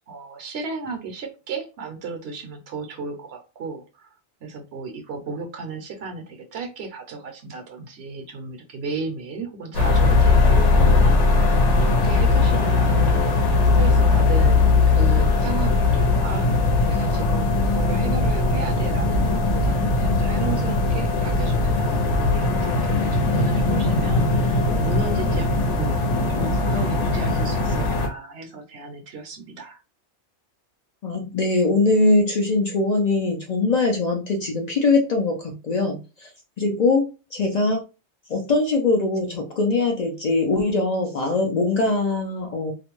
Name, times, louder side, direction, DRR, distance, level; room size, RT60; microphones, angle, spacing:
voice 1, 0.1-29.8, right 4 dB, 70° right, 5 dB, 0.8 m, -34 dB
sound 1, 9.7-28.1, left 3 dB, 90° left, 1.0 m, -19 dB
voice 2, 31.0-36.3 36.6-37.8 38.3-42.7, left 3 dB, 60° left, 2 dB, 0.4 m, -22 dB
2.4 x 2.1 x 2.9 m, 0.31 s
omnidirectional pair, 1.2 m